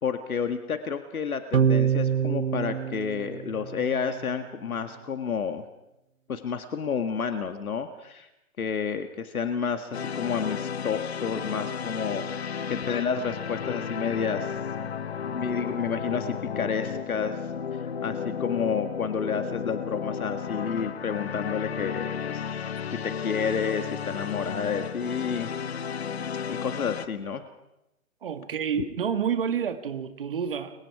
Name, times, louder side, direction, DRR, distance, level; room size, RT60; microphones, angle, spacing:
voice 1, 0.0-5.6 6.3-8.3 8.6-14.6 15.3-17.4 17.7-22.5 22.9-25.5 26.5-27.4, left 6 dB, 80° left, 7 dB, 1.9 m, -30 dB
sound 1, 1.5-4.1, right 8 dB, 65° right, 1.2 m, -25 dB
sound 2, 9.9-27.1, left 7 dB, 45° left, 1.0 m, -33 dB
voice 2, 28.2-30.7, right 7 dB, 40° right, 8 dB, 1.9 m, -29 dB
30.0 x 24.0 x 4.8 m, 0.91 s
hypercardioid pair, 170°, 42 cm